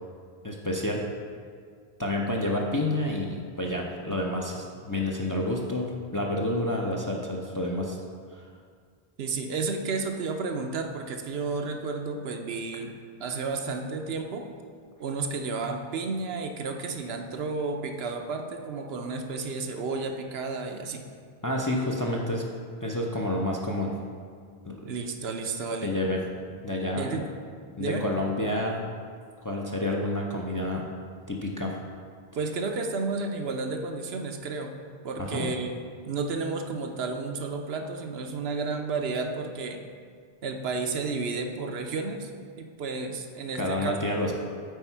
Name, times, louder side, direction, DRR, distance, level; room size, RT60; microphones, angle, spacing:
voice 1, 0.4-1.0 2.0-8.0 8.3-8.5 21.4-22.4 22.8-24.0 24.6-24.8 25.8-26.2 26.6-27.2 27.8-28.8 29.4-30.9 31.3-31.7 35.2-35.5 43.5-44.3, left 1 dB, 25° left, -1 dB, 0.5 m, -29 dB
voice 2, 9.2-12.9 13.2-14.4 15.0-21.0 24.9-25.9 26.9-27.3 27.8-28.1 32.4-34.7 35.0-35.7 36.1-39.8 40.4-42.3 42.6-43.9, right 4 dB, 75° right, 4 dB, 0.9 m, -32 dB
8.1 x 4.6 x 4.5 m, 2.1 s
omnidirectional pair, 1.0 m